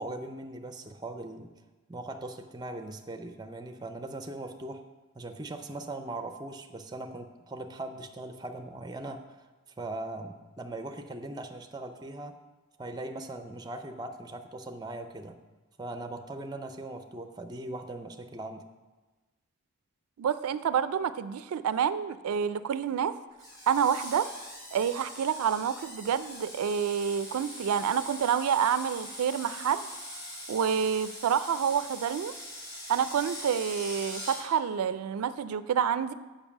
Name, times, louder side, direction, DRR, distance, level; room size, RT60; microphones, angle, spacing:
voice 1, 0.0-1.5 1.9-4.8 5.1-9.5 9.8-12.4 12.8-15.4 15.8-18.7, right 2 dB, 20° right, 7 dB, 0.5 m, -40 dB
voice 2, 20.2-23.1 23.7-24.3 24.7-29.9 30.5-32.4 32.9-36.1, right 7 dB, 80° right, 14 dB, 0.3 m, -28 dB
Screech, 23.4-34.4, left 1 dB, 15° left, 2.9 m, -42 dB
7.2 x 5.3 x 7.1 m, 1.2 s
head